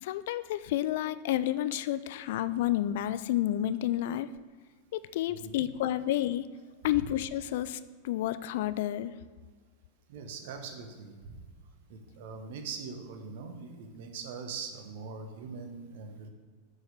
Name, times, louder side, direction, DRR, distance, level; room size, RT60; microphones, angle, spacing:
voice 1, 0.0-4.3 4.9-6.5 6.8-7.8 8.0-9.1, left 13 dB, 55° left, 14 dB, 0.3 m, -30 dB
voice 2, 5.3-5.7 7.0-7.1 10.1-11.4 11.9-16.3, right 5 dB, 50° right, 5 dB, 1.1 m, -42 dB
7.5 x 5.6 x 6.4 m, 1.5 s
figure-of-eight pair, 90°, 0 cm